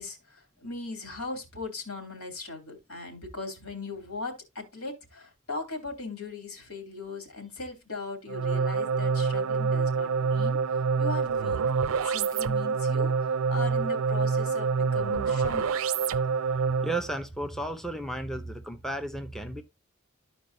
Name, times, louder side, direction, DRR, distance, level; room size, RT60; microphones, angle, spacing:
voice 1, 0.0-10.6 11.0-11.6 12.0-15.8, left 3 dB, 90° left, 2.9 m, -38 dB
sound 1, 8.3-17.1, right 5 dB, 75° right, 0.4 m, -26 dB
voice 2, 16.8-19.6, right 1 dB, ahead, 0.6 m, -34 dB
13.5 x 4.7 x 2.6 m
head